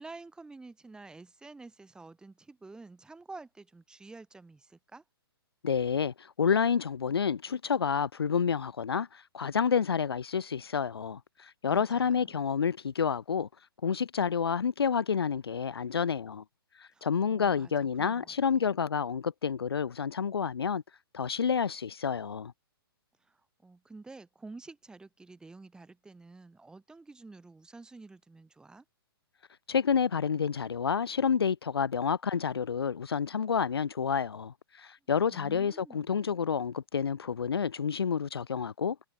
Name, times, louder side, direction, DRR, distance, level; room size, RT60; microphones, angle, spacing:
voice 1, 0.0-5.0 11.7-12.4 16.9-18.3 23.2-28.8 35.3-36.3, right 3 dB, 5° right, 2.9 m, -50 dB
voice 2, 5.6-13.5 13.8-16.4 16.8-20.8 21.1-22.5 29.7-39.1, left 6 dB, 75° left, 0.4 m, -29 dB
figure-of-eight pair, 120°, 13 cm